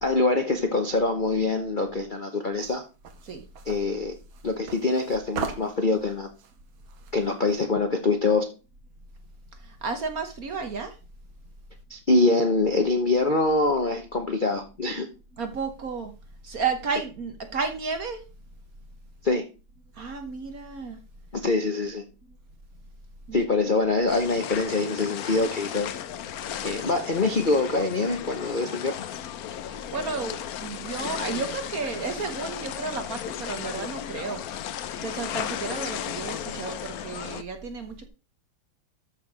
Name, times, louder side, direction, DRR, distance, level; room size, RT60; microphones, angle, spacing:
voice 1, 0.0-2.8 3.6-4.1 4.4-6.3 7.1-8.5 11.9-15.1 19.2-19.4 21.4-22.0 23.3-25.9 26.6-28.9, left 3 dB, 40° left, 0.7 m, -24 dB
sound 1, 2.6-7.7, right 7 dB, 70° right, 2.0 m, -39 dB
voice 2, 9.6-10.9 15.4-16.1 16.4-18.2 20.0-21.0 23.3-23.5 29.6-34.4 35.0-38.1, right 4 dB, 50° right, 1.3 m, -32 dB
sound 2, 24.1-37.4, left 10 dB, 75° left, 0.8 m, -35 dB
13.0 x 4.4 x 5.0 m
omnidirectional pair, 2.4 m